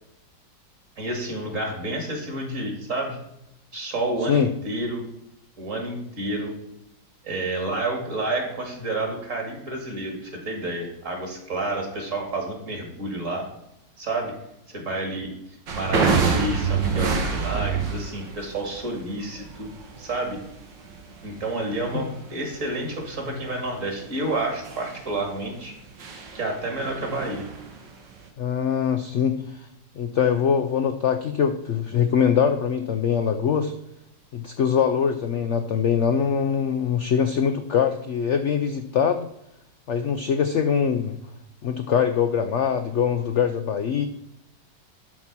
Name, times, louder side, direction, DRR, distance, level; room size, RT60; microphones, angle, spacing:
voice 1, 1.0-3.2 3.7-5.0 5.6-6.5 7.2-13.4 14.0-14.3 14.7-15.3 15.7-19.7 20.0-20.4 21.2-25.7 26.3-27.5, right 2 dB, 45° right, 2 dB, 2.5 m, -29 dB
sound 1, 15.7-28.3, right 5 dB, 80° right, 2.1 m, -28 dB
voice 2, 28.4-29.7 30.0-33.7 34.3-39.3 39.9-41.2 41.6-44.1, left 7 dB, 70° left, 7 dB, 0.6 m, -23 dB
12.0 x 4.2 x 6.0 m, 0.81 s
omnidirectional pair, 2.0 m